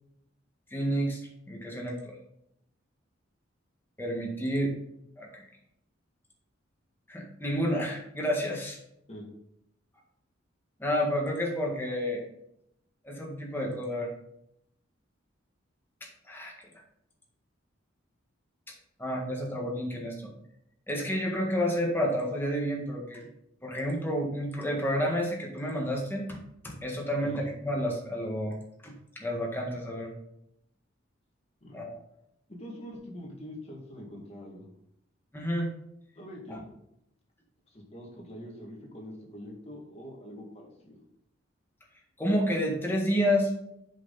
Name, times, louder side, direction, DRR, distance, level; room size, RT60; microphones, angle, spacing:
voice 1, 0.7-1.2 1.5-2.2 4.0-4.7 5.2-5.5 7.1-8.8 10.8-12.2 13.0-14.1 16.0-16.5 18.7-18.8 19.0-20.3 20.9-23.3 23.6-26.4 26.6-28.6 28.8-30.1 31.7-32.0 35.3-35.7 36.5-36.6 42.2-43.5, equal, 10° left, -1 dB, 1.7 m, -30 dB
voice 2, 32.5-34.7 36.2-36.6 37.7-41.0, equal, 35° left, -1 dB, 1.9 m, -44 dB
7.4 x 5.8 x 4.1 m, 0.77 s
head